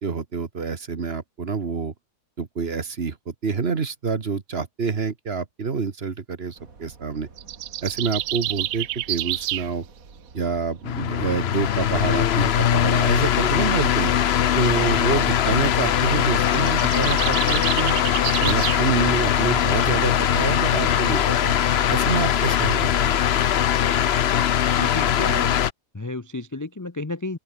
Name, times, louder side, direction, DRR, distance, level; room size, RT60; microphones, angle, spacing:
voice 1, 0.0-1.9 2.4-7.3 7.8-9.8 10.3-14.1 14.5-18.0 18.4-21.5 21.9-23.4, right 5 dB, 40° right, 1.5 m, -27 dB
sound 1, 6.5-23.5, right 4 dB, 55° right, 3.0 m, -48 dB
sound 2, 7.4-9.7 16.3-18.8, right 15 dB, 80° right, 1.2 m, -29 dB
sound 3, 10.8-25.7, left 10 dB, 55° left, 0.7 m, -21 dB
voice 2, 24.8-25.6 25.9-27.4, left 2 dB, 20° left, 0.5 m, -31 dB
open air
omnidirectional pair, 1.7 m